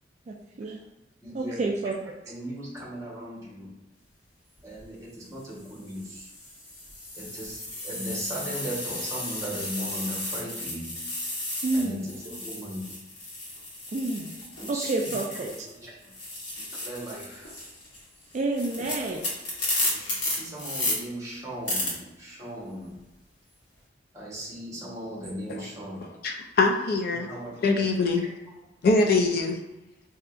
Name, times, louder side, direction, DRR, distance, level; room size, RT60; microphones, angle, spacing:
voice 1, 0.3-0.8 1.3-1.9 11.6-12.1 13.9-14.3 14.7-15.7 18.3-19.2, right 2 dB, 40° right, 0 dB, 0.3 m, -29 dB
voice 2, 1.2-1.7 2.3-3.7 4.6-6.3 7.2-10.9 11.7-12.9 14.7-16.1 16.5-17.5 19.0-19.3 19.8-23.0 24.1-26.1 27.1-27.9 28.2-28.3, right 1 dB, 15° right, -6 dB, 1.1 m, -38 dB
sound 1, 4.6-4.8 5.6-15.8 16.0-21.0 21.7-21.9, left 1 dB, 90° left, 1.2 m, -34 dB
voice 3, 26.2-27.3 27.6-28.3 28.8-29.6, left 3 dB, 55° left, 3 dB, 0.4 m, -23 dB
3.5 x 2.8 x 2.4 m, 1.0 s
head